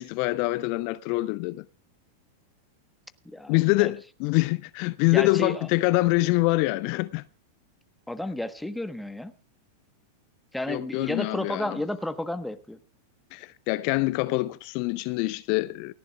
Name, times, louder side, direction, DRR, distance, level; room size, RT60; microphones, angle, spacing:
voice 1, 0.0-1.6 3.5-7.2 10.7-11.8 13.3-15.9, left 21 dB, 45° left, 0.5 m, -25 dB
voice 2, 3.2-3.9 5.1-5.7 8.1-9.3 10.5-12.8, left 1 dB, 5° left, 1.3 m, -32 dB
29.0 x 11.5 x 2.4 m
figure-of-eight pair, 90°, 0 cm